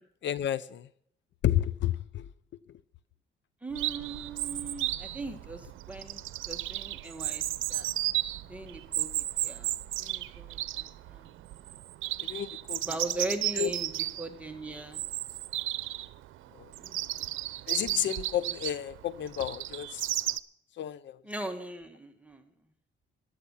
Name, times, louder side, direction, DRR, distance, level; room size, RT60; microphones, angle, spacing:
voice 1, 0.2-0.9 1.4-2.3 12.2-12.8 13.6-13.7 16.6-16.7 17.7-20.0 20.8-21.2, left 11 dB, 65° left, 0.7 m, -31 dB
voice 2, 3.6-7.4 7.7-7.9 8.4-9.7 10.0-11.3 12.8-15.0 16.8-17.3 21.2-22.5, right 2 dB, 5° right, 1.9 m, -40 dB
Chirp tweet, 3.7-20.4, right 15 dB, 85° right, 0.7 m, -34 dB
15.0 x 11.5 x 5.7 m
cardioid pair, 90°, 20 cm